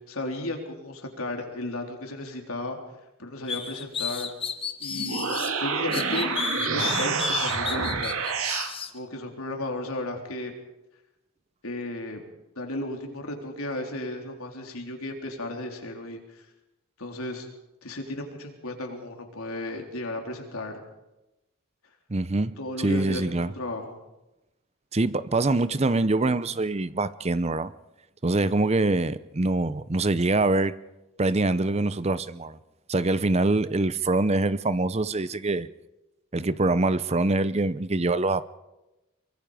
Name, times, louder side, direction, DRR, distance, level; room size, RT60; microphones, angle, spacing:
voice 1, 0.1-2.8 3.2-4.3 4.8-6.3 6.7-8.2 8.9-10.5 11.6-12.2 12.6-16.5 17.0-17.5 17.8-20.8 22.6-24.0 28.8-28.9, left 1 dB, 80° left, 3.8 m, -34 dB
sound 1, 3.5-5.5 5.9-8.9, left 5 dB, 25° left, 1.3 m, -32 dB
sound 2, 4.9-8.7, right 4 dB, 75° right, 2.4 m, -28 dB
voice 2, 22.1-23.5 24.9-27.7 28.2-30.7 31.2-32.6 32.9-35.7 36.3-38.5, right 2 dB, 30° right, 0.6 m, -24 dB
24.0 x 23.5 x 5.1 m
head